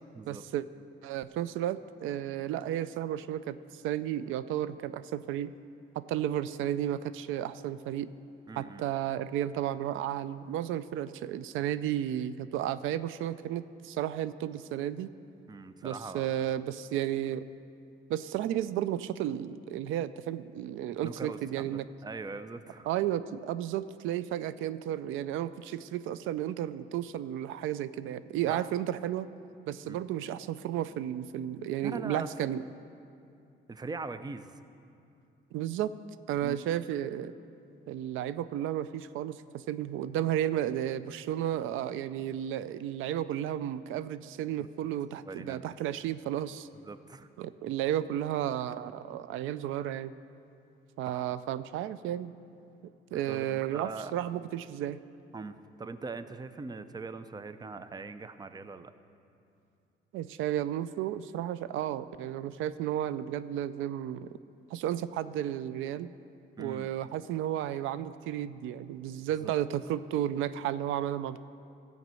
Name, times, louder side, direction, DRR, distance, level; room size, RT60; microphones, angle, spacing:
voice 1, 0.3-0.7 1.0-5.5 6.0-8.1 8.6-15.1 15.8-17.4 18.1-21.9 22.9-29.3 29.7-32.6 35.5-35.9 36.3-37.3 37.9-46.7 47.4-50.1 51.0-52.3 53.1-55.0 60.1-64.4 64.7-66.1 66.6-71.4, right 11 dB, 90° right, 15 dB, 0.4 m, -33 dB
voice 2, 8.5-8.8 15.5-16.3 21.0-22.9 28.5-28.7 29.8-30.1 31.8-32.3 32.6-32.7 33.7-34.5 36.4-36.6 44.6-44.7 45.2-45.7 46.8-47.3 51.1-51.3 53.1-54.1 55.3-58.9 66.6-66.9 69.4-69.5, right 4 dB, 20° right, 12 dB, 0.5 m, -41 dB
13.5 x 5.2 x 7.6 m, 2.6 s
cardioid pair, 90°, 20 cm